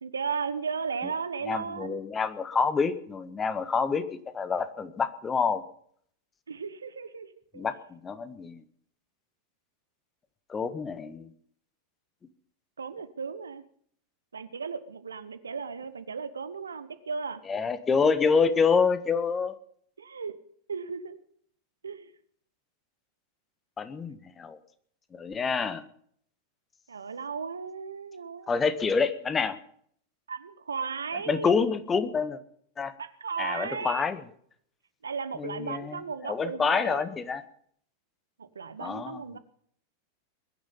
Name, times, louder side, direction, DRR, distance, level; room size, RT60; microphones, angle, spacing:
voice 1, 0.0-2.0 6.5-7.7 12.8-13.6 14.3-17.4 20.0-20.4 20.7-21.2 21.8-22.1 26.9-28.5 30.3-31.6 33.0-34.0 35.0-37.0 38.4-39.4, right 5 dB, 70° right, 14 dB, 1.1 m, -35 dB
voice 2, 1.5-4.0 4.3-5.6 7.5-8.6 10.5-11.3 17.5-19.5 23.8-24.6 25.1-25.8 28.5-29.6 31.3-32.4 32.8-32.9 33.4-34.2 35.4-37.4 38.8-39.2, left 5 dB, 20° left, 12 dB, 1.5 m, -27 dB
21.5 x 10.5 x 5.5 m, 0.62 s
figure-of-eight pair, 90°, 0 cm